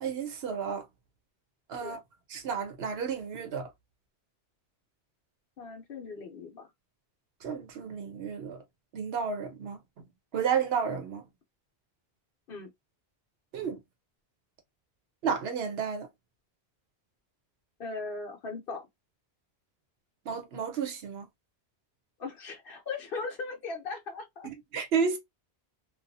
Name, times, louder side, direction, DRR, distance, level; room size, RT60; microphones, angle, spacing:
voice 1, 0.0-0.8 1.7-2.0 2.3-3.7 7.4-8.6 8.9-9.8 10.3-11.2 13.5-13.8 15.2-16.1 20.3-21.3 24.4-25.2, right 6 dB, 70° right, 0.8 m, -32 dB
voice 2, 5.6-6.7 12.5-12.7 17.8-18.9 22.2-24.5, left 4 dB, 60° left, 0.9 m, -38 dB
2.6 x 2.3 x 2.6 m
omnidirectional pair, 1.1 m